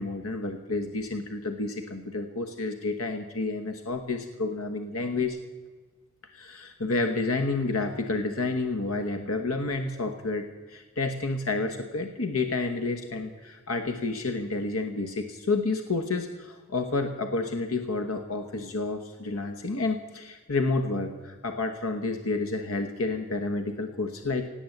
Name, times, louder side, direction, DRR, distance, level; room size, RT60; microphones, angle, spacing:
voice 1, 0.0-5.4 6.3-24.5, left 3 dB, 90° left, 6 dB, 1.1 m, -30 dB
17.5 x 8.6 x 7.9 m, 1.4 s
head